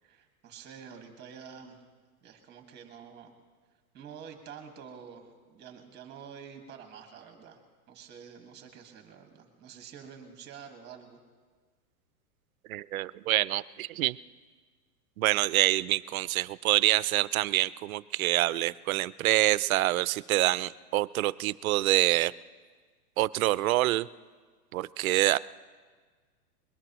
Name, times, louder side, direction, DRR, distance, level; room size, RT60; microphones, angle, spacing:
voice 1, 0.0-1.8 2.2-3.3 3.9-7.6 7.9-11.2, right 7 dB, 20° right, 4 dB, 1.7 m, -48 dB
voice 2, 12.7-14.2 15.2-22.3 23.2-24.1 24.7-25.4, right 16 dB, 60° right, 19 dB, 0.5 m, -26 dB
22.5 x 19.0 x 3.0 m, 1.5 s
hypercardioid pair, 150°, 47 cm